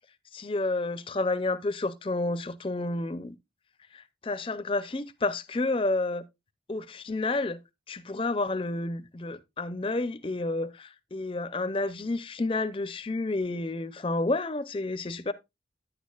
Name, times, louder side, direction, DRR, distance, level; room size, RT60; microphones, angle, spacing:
voice 1, 0.3-3.4 3.9-6.2 6.7-7.6 7.9-15.3, left 2 dB, 30° left, 0.5 m, -30 dB
9.8 x 8.4 x 2.3 m
head